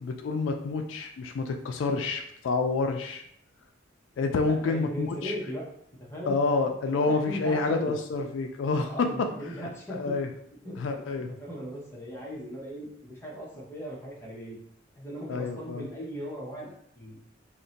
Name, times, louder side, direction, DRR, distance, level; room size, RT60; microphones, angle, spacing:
voice 1, 0.0-3.2 4.2-5.3 6.3-9.3 9.6-10.3 10.8-11.3 15.3-15.9, left 3 dB, 80° left, 4 dB, 0.3 m, -28 dB
voice 2, 4.4-5.6 6.0-6.4 7.1-7.9 8.9-10.1 10.6-10.8 11.4-14.6 15.0-17.2, equal, 15° left, -5 dB, 0.8 m, -38 dB
2.6 x 2.1 x 3.8 m, 0.71 s
head